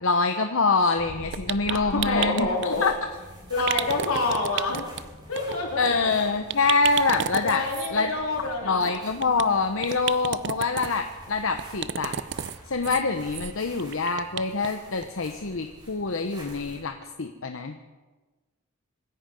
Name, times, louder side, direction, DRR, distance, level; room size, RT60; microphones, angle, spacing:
voice 1, 0.0-2.5 2.8-2.9 5.8-7.6 7.9-8.1 8.6-12.1 12.7-17.8, left 4 dB, 70° left, 6 dB, 0.9 m, -25 dB
sound 1, 1.0-16.8, equal, 20° right, 3.8 m, -46 dB
sound 2, 1.3-2.7 3.6-5.0 5.3-5.6 5.8-5.9 6.2-6.3 6.5-7.9 8.8-9.4 9.8-10.9 11.6-12.6 12.8-13.0 13.3-13.5 13.8-14.7 15.0-15.1 15.5-15.6, right 9 dB, 55° right, 0.5 m, -31 dB
voice 2, 1.7-2.9 3.5-4.8 5.3-6.1 7.4-8.9, left 2 dB, 90° left, 0 dB, 3.7 m, -27 dB
26.0 x 10.5 x 5.3 m, 1.3 s
head